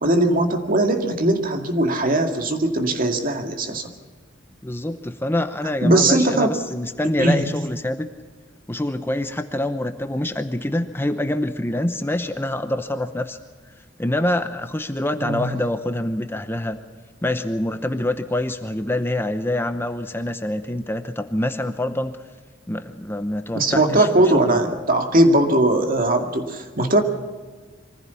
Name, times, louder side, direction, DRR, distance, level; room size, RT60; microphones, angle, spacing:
voice 1, 0.0-3.9 5.8-6.5 7.2-7.4 15.2-15.5 23.5-27.0, right 1 dB, 50° right, 4 dB, 2.2 m, -19 dB
voice 2, 4.6-8.1 8.7-13.4 14.0-16.8 17.2-22.2 22.7-24.1 24.3-24.6, left 1 dB, 10° left, 8 dB, 0.8 m, -25 dB
24.0 x 15.5 x 7.0 m, 1.4 s
head